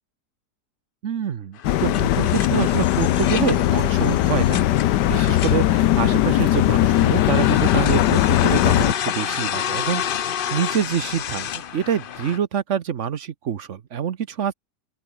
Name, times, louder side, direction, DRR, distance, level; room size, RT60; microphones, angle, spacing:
voice 1, 1.0-14.5, right 8 dB, 50° right, 1.1 m, -26 dB
sound 1, 1.6-8.9, left 14 dB, 90° left, 1.3 m, -19 dB
sound 2, 1.6-12.4, left 9 dB, 65° left, 0.5 m, -30 dB
open air
omnidirectional pair, 1.8 m